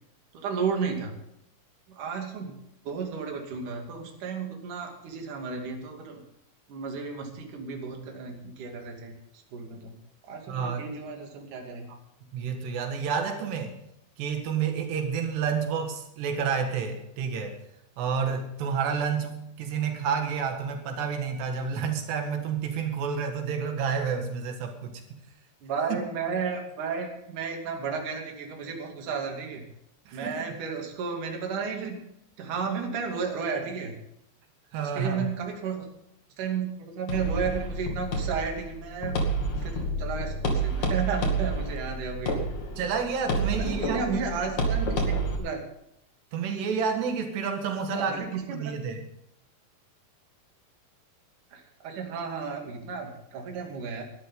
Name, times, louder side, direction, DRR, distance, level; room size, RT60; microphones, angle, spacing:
voice 1, 0.3-1.1 1.9-2.6 2.9-6.2 6.7-9.1 9.5-10.0 10.2-12.0 25.6-29.6 30.1-32.0 32.4-33.9 34.8-35.9 36.4-39.2 39.6-42.4 43.6-45.6 47.9-48.8 51.5-54.0, right 5 dB, 55° right, 1 dB, 3.9 m, -33 dB
voice 2, 10.5-10.8 12.3-13.7 14.2-17.6 18.0-25.0 25.9-26.0 30.1-30.4 34.7-35.3 42.8-44.2 46.3-49.0, right 6 dB, 90° right, 4 dB, 4.0 m, -29 dB
sound 1, 37.1-45.4, right 2 dB, 50° left, 3.4 m, -29 dB
21.0 x 12.5 x 3.8 m, 0.78 s
omnidirectional pair, 4.7 m